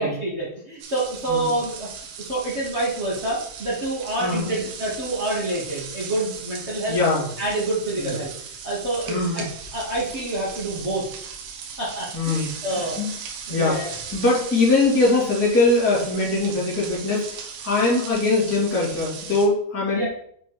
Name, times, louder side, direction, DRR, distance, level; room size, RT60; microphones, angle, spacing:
voice 1, 0.0-7.0 7.4-8.3 8.6-9.4 9.7-11.0 11.8-13.0 13.5-14.2 19.9-20.1, right 2 dB, 50° right, -7 dB, 0.8 m, -27 dB
sound 1, 0.8-19.5, right 6 dB, 80° right, 2.8 m, -38 dB
voice 2, 4.2-4.5 6.9-7.2 8.0-8.1 9.1-9.4 12.1-13.1 13.5-13.8 14.1-20.1, left 3 dB, 5° left, -7 dB, 2.0 m, -22 dB
7.5 x 5.2 x 4.0 m, 0.65 s
omnidirectional pair, 4.2 m